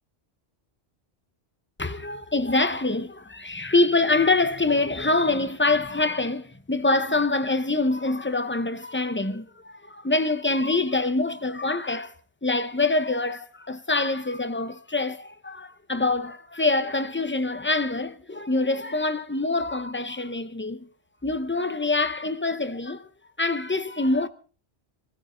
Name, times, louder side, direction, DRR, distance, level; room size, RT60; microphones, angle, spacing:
voice 1, 1.8-12.1 12.4-20.9 21.2-23.1 23.4-24.3, left 2 dB, 15° left, 0.6 m, -25 dB
23.5 x 14.5 x 3.8 m
omnidirectional pair, 1.2 m